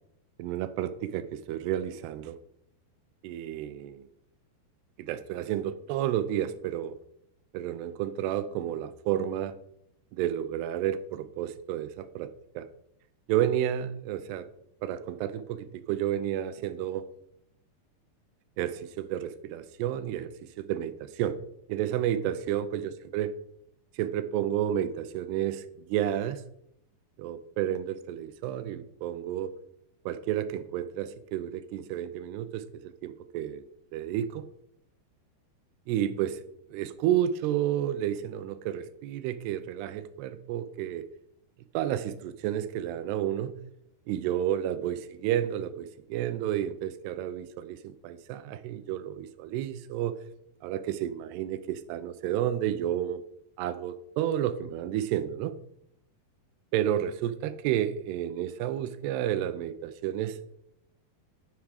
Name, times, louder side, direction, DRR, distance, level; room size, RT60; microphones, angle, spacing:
voice 1, 0.4-2.4 3.2-4.0 5.0-7.0 7.5-9.6 10.1-12.7 13.3-14.5 14.8-17.1 18.6-21.4 21.7-23.3 24.0-26.4 27.2-29.5 30.1-33.6 33.9-34.5 35.9-36.4 36.7-41.1 41.7-43.6 44.1-50.2 50.6-53.2 53.6-55.6 56.7-60.6, right 11 dB, 80° right, 13 dB, 2.7 m, -31 dB
9.4 x 8.6 x 4.9 m, 0.76 s
omnidirectional pair, 4.8 m